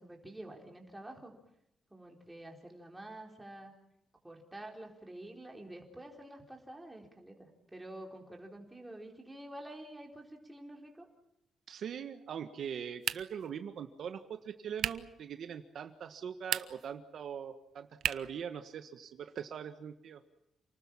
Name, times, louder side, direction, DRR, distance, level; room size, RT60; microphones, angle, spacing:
voice 1, 0.0-1.3 1.9-3.7 4.2-11.1, right 1 dB, 10° right, 1 dB, 4.3 m, -48 dB
voice 2, 11.7-20.2, right 8 dB, 60° right, 7 dB, 1.5 m, -42 dB
sound 1, 13.0-13.5 14.8-15.1 16.4-16.9 18.0-18.4, right 11 dB, 85° right, 0.9 m, -35 dB
29.0 x 19.5 x 7.4 m, 0.83 s
wide cardioid pair, 160°, 0 cm